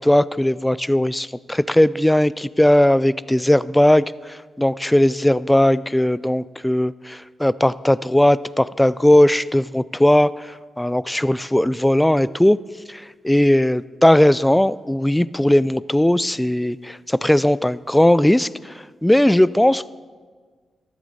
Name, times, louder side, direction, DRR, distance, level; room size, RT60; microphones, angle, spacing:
voice 1, 0.0-12.6 12.9-18.7 19.0-19.9, left 1 dB, 5° left, 18 dB, 0.3 m, -18 dB
14.0 x 13.0 x 4.1 m, 1.5 s
cardioid pair, 90°, 0 cm